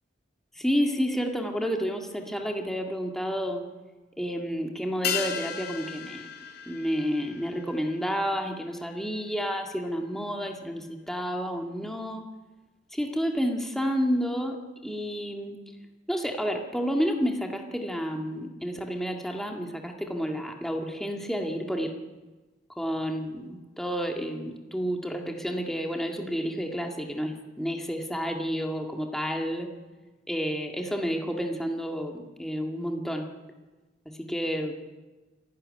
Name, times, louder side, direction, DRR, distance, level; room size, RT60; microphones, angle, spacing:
voice 1, 0.6-3.6 4.2-6.3 6.7-12.2 12.9-15.6 16.1-22.0 22.8-29.7 30.3-33.3 34.1-34.7, equal, ahead, 2 dB, 2.0 m, -30 dB
sound 1, 5.0-9.8 10.0-10.1, left 8 dB, 55° left, 2.9 m, -36 dB
26.5 x 12.5 x 9.9 m, 1.2 s
head